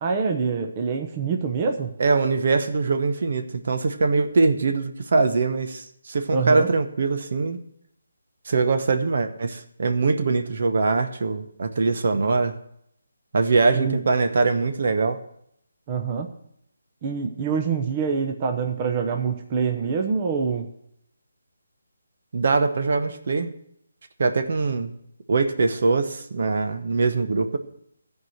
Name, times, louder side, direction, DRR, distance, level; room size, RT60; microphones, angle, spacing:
voice 1, 0.0-1.9 6.3-6.7 13.7-14.0 15.9-16.3 17.0-20.7, right 5 dB, 25° right, 4 dB, 0.8 m, -25 dB
voice 2, 2.0-7.6 8.5-12.6 13.3-15.2 22.3-23.5 24.2-24.9 25.3-27.6, right 3 dB, 55° right, 7 dB, 1.0 m, -22 dB
13.0 x 4.8 x 7.9 m, 0.72 s
hypercardioid pair, 165°, 0 cm